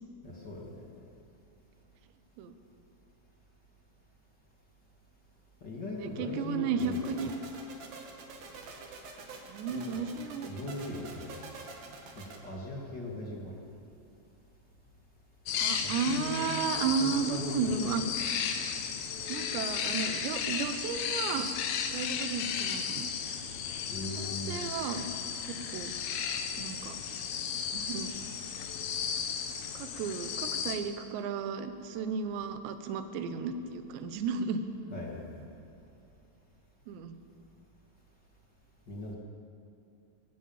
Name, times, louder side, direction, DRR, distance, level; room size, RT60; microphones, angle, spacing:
voice 1, 0.2-1.0 5.6-7.3 9.7-10.1 10.5-11.3 12.1-13.6 15.8-16.5 17.0-18.1 23.9-24.6 34.9-35.4 38.9-39.1, left 2 dB, 35° left, -3 dB, 1.6 m, -39 dB
voice 2, 5.9-7.3 9.5-10.5 15.6-18.0 19.3-21.5 21.9-23.1 24.2-25.1 25.5-25.9 26.6-27.0 27.7-28.1 29.7-34.6 36.9-37.2, right 5 dB, 70° right, 8 dB, 3.0 m, -33 dB
sound 1, 6.8-12.4, right 4 dB, 55° right, 3.5 m, -46 dB
sound 2, 15.5-30.8, left 7 dB, 75° left, 3.9 m, -34 dB
22.0 x 17.5 x 7.3 m, 2.6 s
omnidirectional pair, 5.9 m